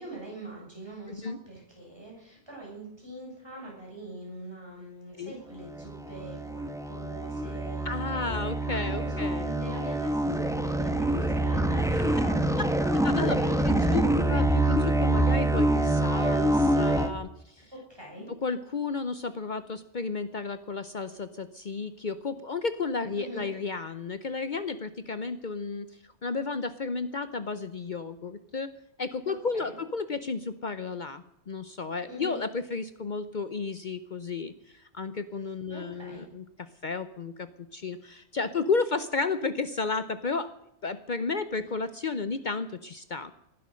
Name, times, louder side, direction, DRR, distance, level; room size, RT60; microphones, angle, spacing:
voice 1, 0.0-8.2 8.8-14.4 17.7-18.3 23.2-23.5 29.3-29.8 32.1-32.4 35.7-36.3, right 1 dB, 20° right, -3 dB, 6.7 m, -43 dB
voice 2, 1.1-1.4 5.2-5.4 7.8-9.5 13.0-13.4 13.6-14.0 14.3-17.5 18.3-25.9 26.2-28.7 29.0-36.4 36.8-40.5 40.8-43.3, left 4 dB, 45° left, 12 dB, 0.8 m, -32 dB
sound 1, 5.7-17.1, right 1 dB, 5° right, 1.0 m, -26 dB
19.5 x 11.5 x 6.3 m, 0.78 s
omnidirectional pair, 1.2 m